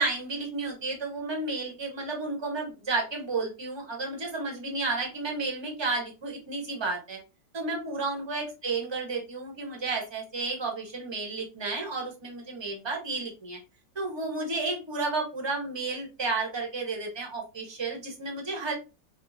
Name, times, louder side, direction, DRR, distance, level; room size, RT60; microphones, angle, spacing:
voice 1, 0.0-7.2 7.5-13.6 13.9-18.7, right 3 dB, 20° right, 0 dB, 0.8 m, -32 dB
5.3 x 2.1 x 2.6 m, 0.29 s
omnidirectional pair, 1.8 m